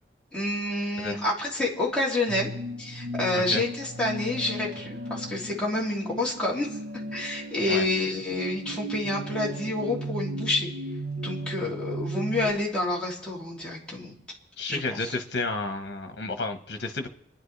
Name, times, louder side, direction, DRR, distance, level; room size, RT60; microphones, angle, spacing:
voice 1, 0.3-2.5 2.8-6.7 7.1-10.7 11.2-14.1 14.7-15.1, left 2 dB, 5° left, -5 dB, 3.0 m, -28 dB
sound 1, 2.3-12.5, right 1 dB, 75° right, 1.2 m, -36 dB
voice 2, 3.3-3.6 7.7-7.8 14.6-17.1, left 3 dB, 70° left, 6 dB, 1.3 m, -31 dB
30.0 x 10.5 x 3.4 m, 0.75 s
head